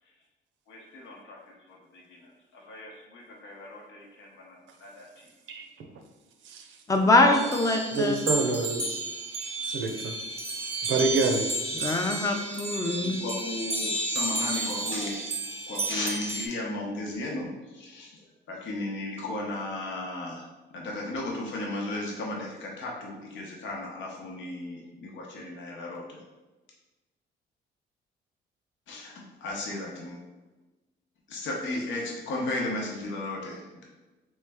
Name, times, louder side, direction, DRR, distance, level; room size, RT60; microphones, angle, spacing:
voice 1, 0.7-1.4 1.9-2.0 2.5-4.5 4.8-5.0 13.0-15.2 15.7-17.5 17.7-18.1 18.5-20.4 20.7-26.2 28.9-30.2 31.3-33.8, left 2 dB, 75° left, -2 dB, 0.8 m, -35 dB
voice 2, 6.9-8.2 11.7-13.2, left 2 dB, 15° left, 3 dB, 0.5 m, -23 dB
sound 1, 7.3-16.5, right 2 dB, 30° right, 0.5 m, -32 dB
voice 3, 7.9-8.8 9.7-10.1 10.9-11.5, right 3 dB, 70° right, 5 dB, 0.6 m, -26 dB
3.2 x 3.2 x 3.4 m, 1.1 s
cardioid pair, 90°, 20 cm